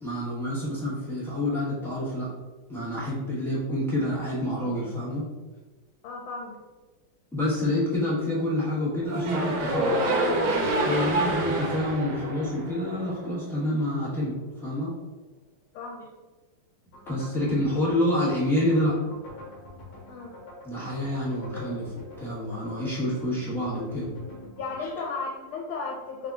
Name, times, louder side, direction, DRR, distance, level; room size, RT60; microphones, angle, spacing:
voice 1, 0.0-2.3 2.7-5.3 7.3-9.9 10.8-14.3 14.6-14.9 17.1-19.0 20.6-24.1 24.8-24.9, left 1 dB, ahead, -9 dB, 0.6 m, -28 dB
voice 2, 6.0-6.6 10.9-11.2 15.7-16.1 20.1-20.4 24.6-26.3, left 4 dB, 85° left, -1 dB, 1.5 m, -35 dB
sound 1, 9.0-13.2, right 1 dB, 65° right, 1.1 m, -27 dB
sound 2, 16.9-24.9, left 2 dB, 65° left, 1.4 m, -45 dB
3.7 x 3.4 x 2.4 m, 1.2 s
omnidirectional pair, 2.3 m